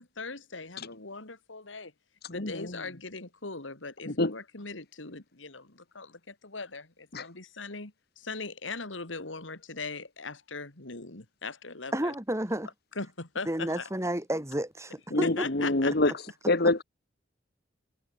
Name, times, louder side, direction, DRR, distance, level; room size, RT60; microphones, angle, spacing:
voice 1, 0.0-1.9 2.3-12.1 13.0-13.9 15.2-16.1, left 4 dB, 90° left, 3.0 m, -40 dB
voice 2, 2.3-2.8 4.1-4.3 7.1-7.3 15.1-16.1 16.5-16.8, left 2 dB, 60° left, 2.0 m, -26 dB
voice 3, 11.9-12.7 13.5-15.5, right 1 dB, 15° right, 5.4 m, -31 dB
head